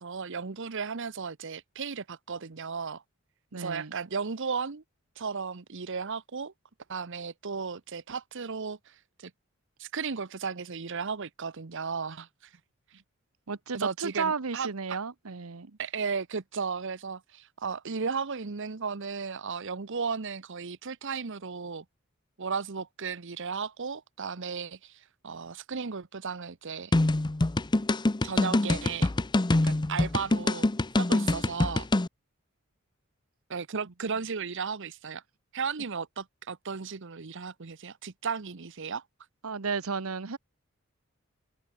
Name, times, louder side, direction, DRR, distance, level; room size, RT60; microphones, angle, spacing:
voice 1, 0.0-3.0 3.6-4.8 5.2-6.5 6.9-9.3 9.8-12.5 13.7-15.0 15.8-21.8 22.4-26.9 28.2-29.1 29.6-30.7 31.0-31.9 33.5-35.2 35.5-39.0, right 5 dB, 60° right, 0.9 m, -35 dB
voice 2, 3.5-3.9 13.5-15.7 39.4-40.4, right 5 dB, 85° right, 1.0 m, -33 dB
sound 1, 26.9-32.1, left 2 dB, 20° left, 0.6 m, -25 dB
head